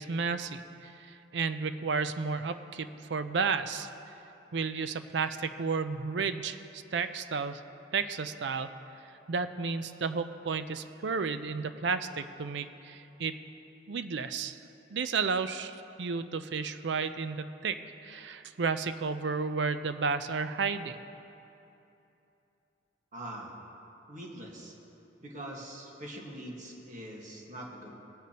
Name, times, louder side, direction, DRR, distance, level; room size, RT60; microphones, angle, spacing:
voice 1, 0.0-3.9 4.5-7.6 7.9-8.7 9.3-13.4 13.9-14.6 14.9-21.0, right 5 dB, 65° right, 11 dB, 0.5 m, -32 dB
voice 2, 23.1-23.5 24.1-24.7 25.2-27.9, right 1 dB, 40° right, -1 dB, 1.6 m, -43 dB
19.0 x 9.2 x 2.9 m, 2.9 s
head